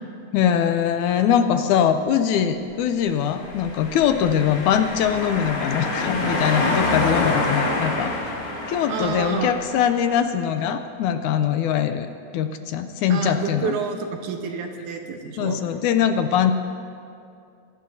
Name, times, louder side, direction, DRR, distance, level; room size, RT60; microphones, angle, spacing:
voice 1, 0.3-13.8 15.4-16.5, left 8 dB, 80° left, 9 dB, 1.9 m, -22 dB
sound 1, 3.3-10.1, left 2 dB, 45° left, 2.9 m, -27 dB
voice 2, 8.9-9.5 13.1-15.6, right 6 dB, 75° right, 4 dB, 2.4 m, -29 dB
24.0 x 17.5 x 2.7 m, 2.4 s
omnidirectional pair, 3.7 m